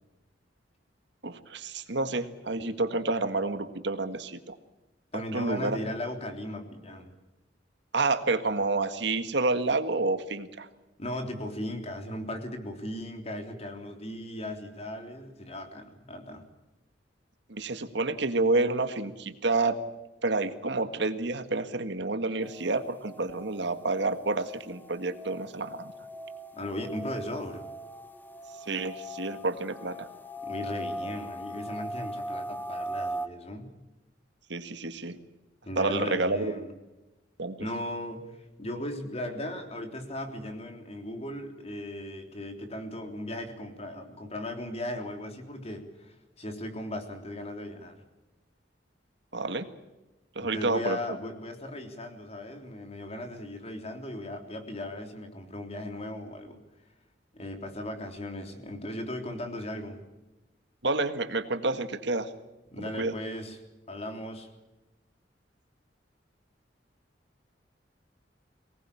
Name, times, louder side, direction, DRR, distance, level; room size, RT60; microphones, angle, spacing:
voice 1, 1.2-4.6 5.3-5.8 7.9-10.7 17.5-19.8 20.2-25.9 28.7-30.1 34.5-35.2 35.8-36.5 37.4-37.6 49.3-49.7 50.4-51.0 60.8-62.3 62.8-63.2, right 3 dB, 70° right, 9 dB, 1.7 m, -29 dB
voice 2, 5.1-7.1 11.0-16.5 26.5-27.6 30.4-33.7 35.6-36.7 37.6-48.0 50.4-56.6 57.3-60.0 62.7-63.6 63.9-64.5, left 1 dB, 35° left, 5 dB, 3.5 m, -37 dB
sound 1, 22.4-33.3, equal, 10° left, 1.3 m, -40 dB
23.5 x 19.5 x 8.5 m, 1.0 s
head